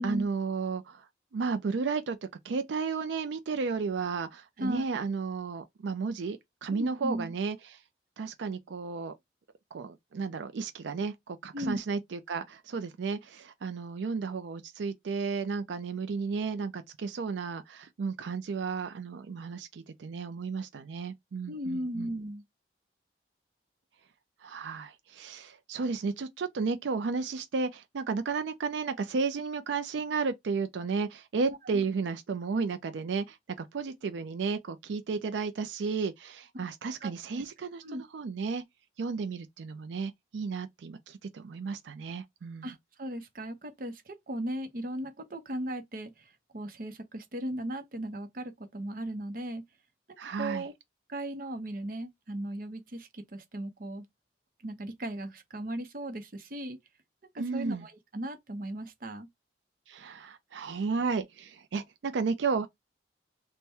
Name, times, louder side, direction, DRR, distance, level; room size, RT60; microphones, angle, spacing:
voice 1, 0.0-2.2 2.4-7.8 8.2-9.2 9.7-22.1 24.4-38.6 39.0-42.7 50.2-50.7 57.4-57.9 59.9-62.7, right 4 dB, 85° right, 0.4 m, -33 dB
voice 2, 6.7-7.3 11.5-11.8 21.5-22.4 31.5-31.8 37.0-37.4 37.8-38.0 42.6-49.6 50.4-50.7 51.1-54.0 54.6-56.8 57.3-59.3, right 1 dB, 50° right, 0.6 m, -37 dB
3.3 x 2.1 x 4.3 m
head